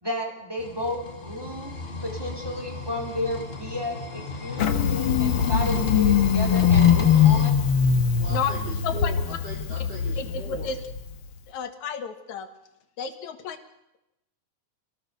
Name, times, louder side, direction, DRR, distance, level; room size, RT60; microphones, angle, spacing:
voice 1, 0.0-7.5, left 1 dB, 5° right, 1 dB, 3.5 m, -33 dB
sound 1, 0.6-7.5, left 3 dB, 30° left, 1.0 m, -34 dB
Engine starting, 4.6-11.1, left 7 dB, 55° left, 1.7 m, -21 dB
voice 2, 8.2-10.7, right 2 dB, 55° right, -3 dB, 5.2 m, -39 dB
voice 3, 10.2-10.8 11.5-12.5 13.0-13.6, left 6 dB, 70° left, 8 dB, 2.9 m, -31 dB
26.0 x 17.5 x 6.8 m, 0.87 s
omnidirectional pair, 3.5 m